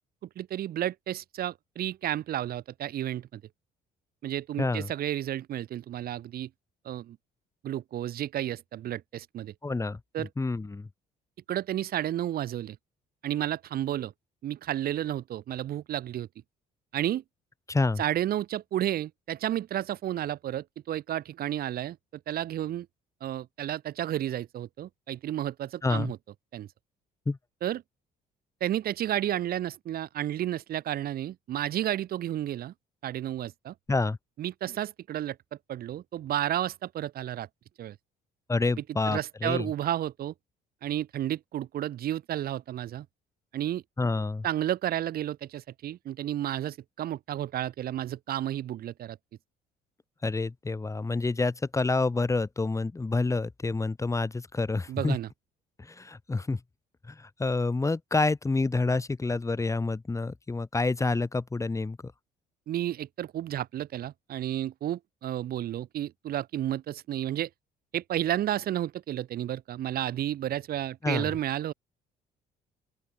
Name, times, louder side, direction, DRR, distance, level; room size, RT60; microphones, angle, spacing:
voice 1, 0.2-3.4 4.2-6.5 6.8-7.2 7.6-9.5 10.1-10.3 11.5-12.8 13.2-14.1 14.4-16.3 16.9-17.2 18.0-22.0 22.3-22.9 23.2-26.2 26.5-26.7 27.6-27.8 28.6-32.7 33.0-33.7 34.4-35.4 35.7-37.5 37.8-37.9 39.1-40.3 40.8-43.0 43.5-43.8 44.4-49.2 54.9-55.3 62.7-67.5 67.9-71.7, right 12 dB, 65° right, 5.1 m, -32 dB
voice 2, 4.6-4.9 9.6-10.9 17.7-18.0 25.8-26.1 27.3-27.4 33.9-34.2 38.5-39.7 44.0-44.5 50.2-55.2 55.8-56.6 57.1-62.1 71.0-71.2, left 3 dB, 20° left, 7.6 m, -28 dB
open air
cardioid pair, 110°, 17 cm